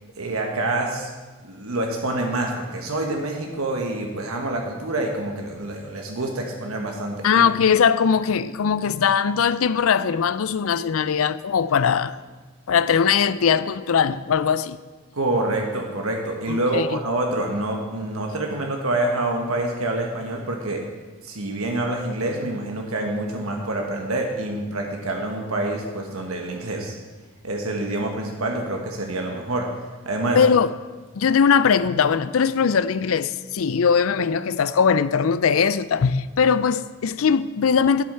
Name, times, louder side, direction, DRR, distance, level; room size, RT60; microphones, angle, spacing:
voice 1, 0.2-1.1 1.4-7.5 15.1-20.8 21.2-26.9 27.4-29.7 30.0-30.4, right 2 dB, 90° right, 1.4 m, -26 dB
voice 2, 7.2-12.2 12.7-14.8 16.5-17.0 30.3-30.7 31.2-38.0, left 6 dB, 80° left, 0.4 m, -20 dB
11.5 x 7.9 x 5.7 m
head